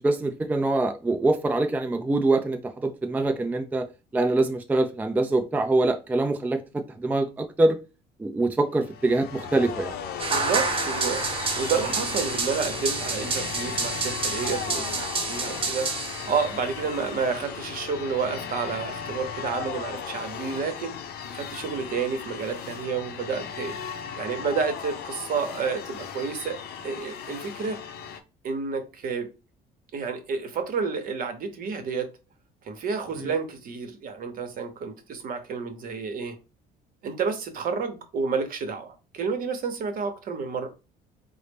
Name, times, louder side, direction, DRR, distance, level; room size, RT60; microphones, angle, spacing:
voice 1, 0.0-3.9 4.1-7.8 8.2-10.0 33.2-33.3, right 2 dB, 10° right, 0.3 m, -24 dB
sound 1, 8.8-28.2, left 7 dB, 70° left, 0.6 m, -36 dB
sound 2, 10.2-16.6, right 4 dB, 35° right, 0.7 m, -29 dB
voice 2, 10.3-21.0 21.3-23.7 24.2-26.6 26.8-27.8 28.4-29.3 29.9-32.1 32.6-36.4 37.0-40.7, right 5 dB, 55° right, 0.8 m, -30 dB
3.9 x 2.0 x 3.4 m
cardioid pair, 110°, 17 cm